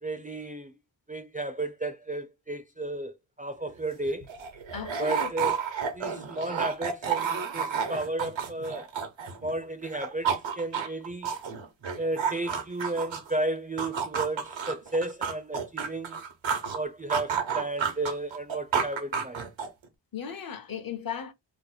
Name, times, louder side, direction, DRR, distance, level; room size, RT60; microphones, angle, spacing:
voice 1, 0.0-0.8 1.1-4.3 5.0-5.6 5.9-8.9 9.4-11.3 12.0-16.2 16.7-19.5, right 2 dB, 20° right, 0.4 m, -33 dB
sound 1, 3.7-3.8 4.0-9.5 9.8-13.3 13.8-16.8 17.1-19.8, right 6 dB, 90° right, 0.9 m, -31 dB
voice 2, 4.7-5.3 20.1-21.3, left 7 dB, 50° left, 0.6 m, -36 dB
2.8 x 2.1 x 3.9 m
wide cardioid pair, 95°, 45 cm